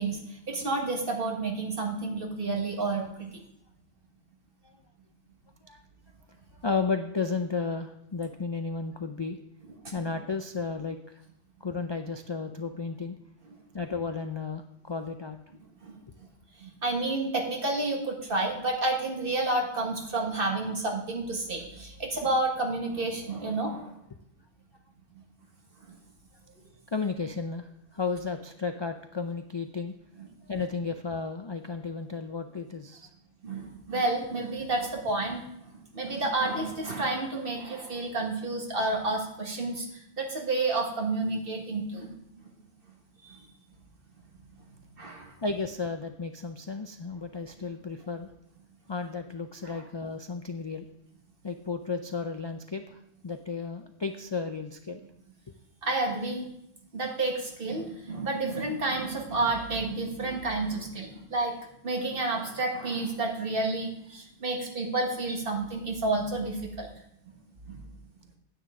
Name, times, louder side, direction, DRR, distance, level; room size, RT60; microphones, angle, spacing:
voice 1, 0.0-3.4 9.8-10.1 15.8-16.0 16.6-23.9 25.9-26.0 33.4-39.9 40.2-42.1 43.2-43.4 45.0-45.3 49.6-49.8 55.8-56.5 56.9-61.6 61.8-66.9 67.7-67.8, right 2 dB, 55° right, 1 dB, 1.8 m, -30 dB
voice 2, 6.6-9.4 9.9-11.0 11.6-13.2 13.7-15.4 26.9-29.9 30.5-33.1 45.4-48.3 48.9-50.8 51.4-55.0, left 4 dB, 45° left, 6 dB, 0.3 m, -33 dB
9.6 x 9.1 x 3.7 m, 0.76 s
omnidirectional pair, 1.2 m